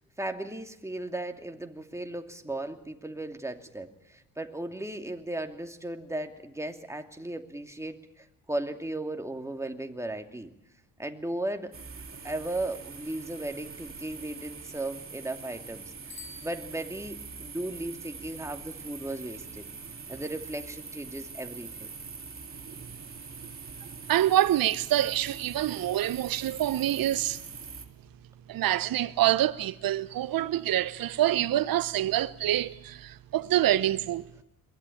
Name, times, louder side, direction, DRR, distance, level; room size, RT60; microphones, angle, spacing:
voice 1, 0.0-10.5 11.0-11.7 12.2-19.7 20.1-21.9, right 1 dB, 5° right, 2.6 m, -36 dB
sound 1, 11.7-27.8, right 5 dB, 30° right, 3.2 m, -43 dB
Bicycle bell, 16.0-17.4, left 6 dB, 60° left, 7.7 m, -49 dB
voice 2, 24.1-27.4 28.5-34.3, right 13 dB, 50° right, 0.9 m, -26 dB
22.5 x 17.5 x 8.6 m
hypercardioid pair, 50°, 46 cm